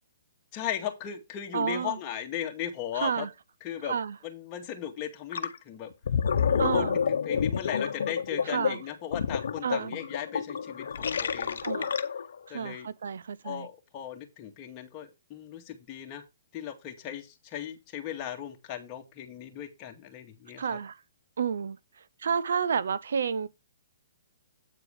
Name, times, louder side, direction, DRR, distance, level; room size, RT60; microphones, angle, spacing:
voice 1, 0.5-3.3 3.6-4.0 4.2-5.9 6.5-11.7 12.5-12.9 13.4-16.2 16.5-20.8, left 10 dB, 30° left, 2.1 m, -37 dB
voice 2, 1.5-2.0 2.9-3.3 3.9-4.2 6.6-7.0 8.5-8.8 9.6-10.0 11.6-12.0 12.5-13.7 20.6-21.0 21.4-21.8 22.2-23.5, right 6 dB, 70° right, 0.7 m, -30 dB
Gurgling, 5.3-5.6 5.9-12.4, left 7 dB, 70° left, 1.0 m, -29 dB
8.9 x 4.7 x 4.8 m
hypercardioid pair, 135°, 0 cm